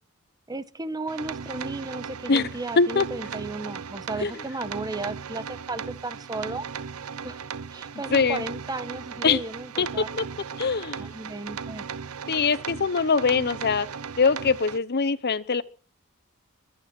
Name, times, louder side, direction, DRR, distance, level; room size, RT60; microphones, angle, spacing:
voice 1, 0.5-6.7 7.2-7.4 7.7-10.1 11.0-11.8, right 2 dB, 20° right, 1.1 m, -34 dB
sound 1, 1.1-14.8, right 6 dB, 70° right, 0.7 m, -37 dB
voice 2, 8.1-8.4 9.2-9.4 9.8-9.9 10.2-10.3 10.6-11.0 12.3-13.9 14.2-15.6, left 5 dB, 50° left, 1.0 m, -22 dB
22.5 x 9.1 x 6.0 m
head